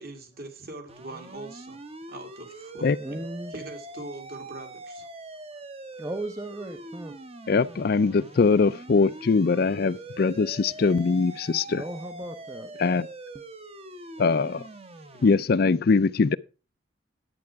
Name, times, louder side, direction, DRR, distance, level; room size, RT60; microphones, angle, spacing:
voice 1, 0.0-1.8 2.1-3.2 3.5-5.1, right 2 dB, 55° right, 2.3 m, -42 dB
sound 1, 0.9-15.3, right 2 dB, 30° right, 0.9 m, -43 dB
voice 2, 3.0-3.5 6.0-7.2 11.8-12.7, right 1 dB, 15° right, 0.6 m, -36 dB
voice 3, 7.5-11.8 12.8-13.1 14.2-14.7 15.2-16.4, left 4 dB, 55° left, 0.4 m, -22 dB
11.0 x 8.6 x 4.6 m
head